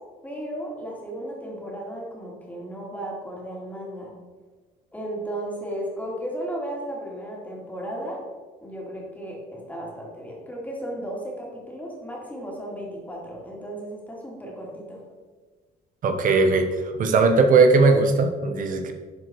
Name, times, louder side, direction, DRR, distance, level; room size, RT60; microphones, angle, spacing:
voice 1, 0.2-4.1 4.9-8.2 8.6-15.0, right 1 dB, 10° left, -3 dB, 3.0 m, -35 dB
voice 2, 16.0-16.7 17.0-18.9, right 4 dB, 55° right, 5 dB, 1.1 m, -18 dB
10.5 x 5.0 x 4.7 m, 1.4 s
cardioid pair, 110°, 17 cm